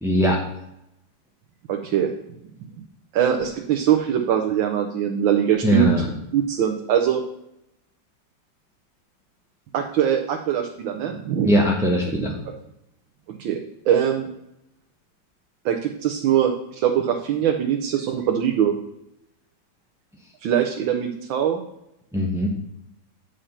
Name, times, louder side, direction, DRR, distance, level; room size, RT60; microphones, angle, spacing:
voice 1, 0.0-0.4 5.6-6.1 11.4-12.3 22.1-22.5, equal, 5° right, -1 dB, 0.5 m, -20 dB
voice 2, 1.7-2.1 3.1-7.2 9.7-11.5 13.3-13.6 13.9-14.3 15.6-18.7 20.4-21.6, right 9 dB, 80° right, 3 dB, 1.6 m, -22 dB
8.9 x 5.0 x 5.6 m, 0.83 s
omnidirectional pair, 2.2 m